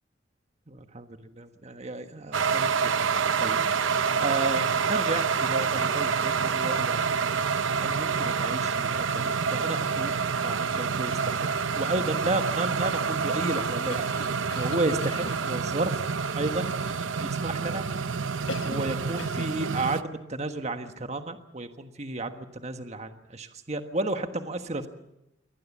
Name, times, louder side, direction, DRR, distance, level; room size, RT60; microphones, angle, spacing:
voice 1, 0.7-2.9 3.4-3.6 4.2-7.2 7.8-11.5 11.8-16.0 16.3-17.8 18.6-24.9, right 2 dB, 35° right, 7 dB, 1.4 m, -33 dB
sound 1, 2.3-20.0, right 5 dB, 85° right, 0.7 m, -27 dB
Cough, 13.9-15.5 18.5-18.9 19.2-19.6, left 3 dB, 85° left, 1.3 m, -39 dB
23.5 x 18.5 x 7.3 m, 0.88 s
head